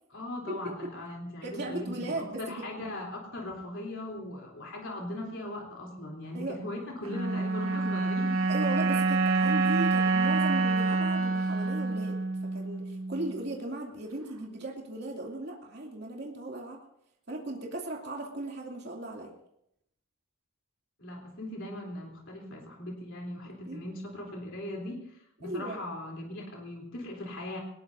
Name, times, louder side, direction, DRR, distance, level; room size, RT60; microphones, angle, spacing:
voice 1, 0.1-8.4 21.0-25.1 25.4-27.6, left 1 dB, 60° left, -1 dB, 3.5 m, -39 dB
voice 2, 1.4-2.7 6.3-6.6 8.5-12.2 12.4-16.8 17.3-19.3 23.7-23.8 25.4-25.8, right 2 dB, 50° right, -1 dB, 2.7 m, -37 dB
sound 1, 7.0-13.5, right 3 dB, 75° right, 1.5 m, -27 dB
22.5 x 19.5 x 2.7 m, 0.76 s
head